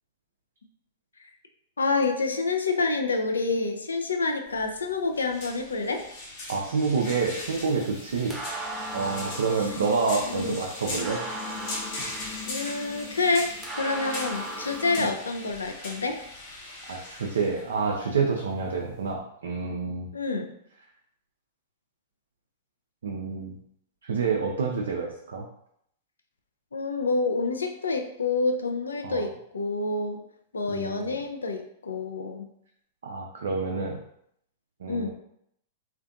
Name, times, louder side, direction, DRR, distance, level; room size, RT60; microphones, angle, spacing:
voice 1, 1.8-6.0 10.2-10.6 12.5-13.5 13.8-16.2 20.1-20.5 26.7-30.2 30.5-32.5 34.9-35.1, left 3 dB, 80° left, 4 dB, 0.3 m, -28 dB
sound 1, 4.5-19.1, left 2 dB, 45° left, 0.7 m, -40 dB
voice 2, 6.5-8.4 8.9-11.2 15.0-15.1 16.9-20.1 23.0-23.6 24.0-25.5 29.0-29.3 30.7-31.2 33.0-34.0 34.8-35.1, right 4 dB, 70° right, 0 dB, 0.3 m, -28 dB
sound 2, 7.0-15.0, right 1 dB, 10° right, 0.7 m, -38 dB
2.5 x 2.2 x 2.5 m, 0.71 s
figure-of-eight pair, 100°, 0 cm